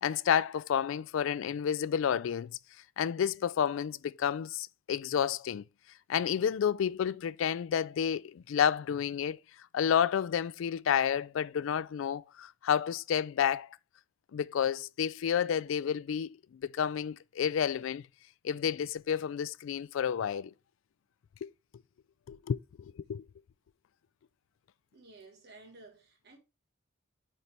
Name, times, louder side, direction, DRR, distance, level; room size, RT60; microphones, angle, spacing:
voice 1, 0.0-2.6 3.0-5.6 6.1-9.4 9.7-13.7 14.3-16.3 16.6-18.0 18.4-20.5 21.4-21.5 22.3-23.2, left 8 dB, 70° left, 0.3 m, -30 dB
voice 2, 24.9-26.4, right 3 dB, 50° right, 1.6 m, -54 dB
9.1 x 4.3 x 3.4 m
head